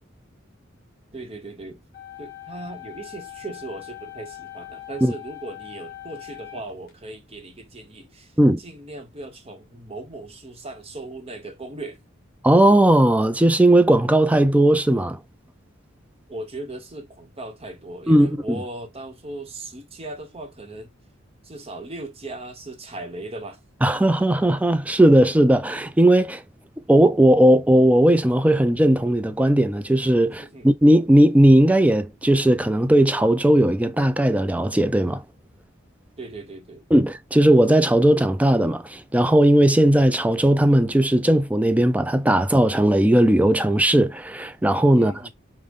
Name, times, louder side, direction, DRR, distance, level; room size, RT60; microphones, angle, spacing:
voice 1, 1.1-1.8 2.2-12.0 16.3-20.9 21.4-23.6 30.3-30.7 36.2-36.9 44.9-45.3, right 2 dB, 30° right, 0.9 m, -38 dB
sound 1, 1.9-6.9, left 15 dB, 50° left, 1.3 m, -41 dB
voice 2, 12.4-15.2 18.1-18.3 23.8-26.4 26.9-35.2 36.9-45.3, right 1 dB, 5° right, 0.3 m, -17 dB
5.2 x 2.1 x 3.5 m
head